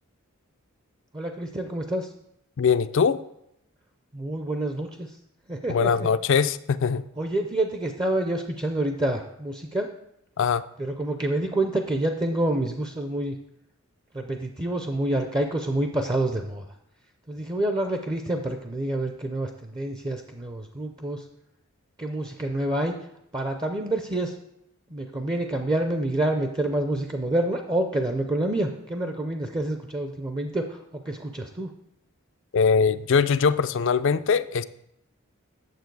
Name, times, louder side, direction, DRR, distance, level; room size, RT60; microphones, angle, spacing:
voice 1, 1.1-2.1 4.1-5.2 5.5-6.1 7.2-9.9 10.8-13.4 14.1-16.7 17.3-21.3 22.0-22.9 23.3-24.3 24.9-31.7, right 1 dB, 20° right, 5 dB, 0.5 m, -27 dB
voice 2, 2.6-3.2 5.7-7.0 10.4-10.6 32.5-34.6, left 6 dB, 60° left, 14 dB, 0.4 m, -22 dB
9.2 x 7.1 x 4.6 m, 0.79 s
head